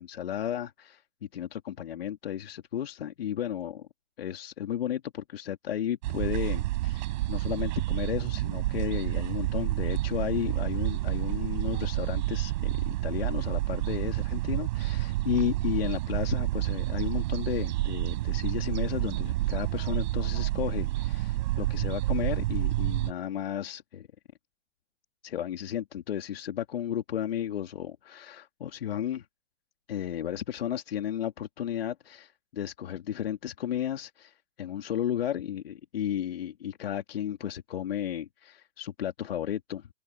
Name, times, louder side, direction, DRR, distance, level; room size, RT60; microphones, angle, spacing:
voice 1, 0.0-3.9 4.2-24.1 25.2-29.3 29.9-39.9, left 10 dB, 65° left, 3.0 m, -33 dB
sound 1, 6.0-23.1, right 17 dB, 45° right, 5.4 m, -29 dB
hypercardioid pair, 145°, 32 cm